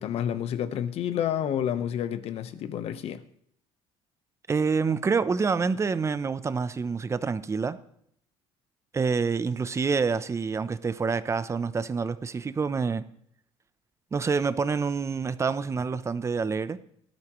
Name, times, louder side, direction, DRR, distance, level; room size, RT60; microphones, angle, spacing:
voice 1, 0.0-3.2, left 9 dB, 60° left, 1.1 m, -29 dB
voice 2, 4.5-7.8 8.9-13.1 14.1-16.8, right 5 dB, 25° right, 0.7 m, -27 dB
17.5 x 12.0 x 3.1 m
cardioid pair, 110°, 12 cm